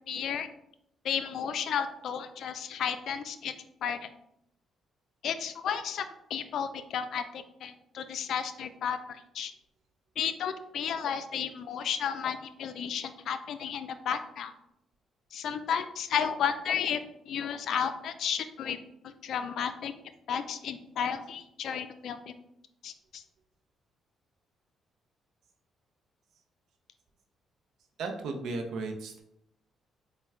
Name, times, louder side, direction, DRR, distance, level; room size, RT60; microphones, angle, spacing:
voice 1, 0.1-0.5 1.0-3.5 3.8-4.1 5.2-6.1 6.3-9.5 10.2-14.5 15.3-17.0 17.3-18.8 19.2-19.9 20.3-22.3 22.8-23.2, left 7 dB, 70° left, 10 dB, 0.3 m, -33 dB
voice 2, 28.0-29.2, right 3 dB, 75° right, 4 dB, 0.6 m, -35 dB
4.2 x 2.2 x 3.5 m, 0.78 s
cardioid pair, 85°, 0 cm